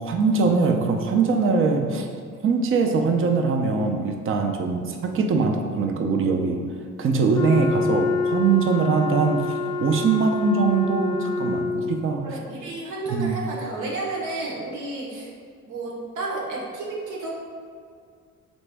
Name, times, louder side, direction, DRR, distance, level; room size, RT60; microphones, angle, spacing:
voice 1, 0.0-2.1 2.4-6.6 7.0-12.2 13.1-13.4, right 4 dB, 45° right, 4 dB, 0.5 m, -22 dB
Wind instrument woodwind instrument, 7.3-12.0, left 4 dB, 15° left, 0.4 m, -27 dB
voice 2, 12.2-15.3 15.7-17.3, right 2 dB, 85° right, -2 dB, 1.1 m, -31 dB
4.1 x 3.4 x 3.4 m, 2.2 s
cardioid pair, 90°, 30 cm